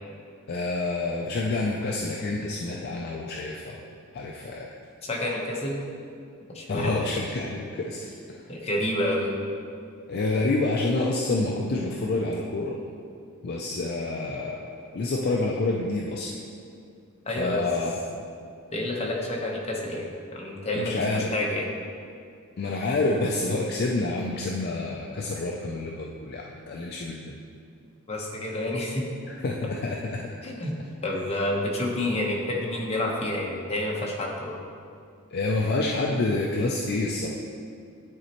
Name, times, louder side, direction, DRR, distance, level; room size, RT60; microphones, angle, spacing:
voice 1, 0.5-3.8 4.1-4.7 6.7-8.5 10.1-12.8 13.4-16.4 17.4-18.1 20.7-21.3 22.6-27.4 29.4-30.3 35.3-37.3, left 2 dB, 45° left, -1 dB, 0.4 m, -28 dB
voice 2, 5.0-5.8 6.5-7.1 8.5-9.4 17.3-17.6 18.7-21.7 28.1-29.0 30.4-30.7 31.0-34.6, left 1 dB, 30° left, -2 dB, 0.9 m, -29 dB
9.7 x 4.2 x 2.9 m, 2.3 s
head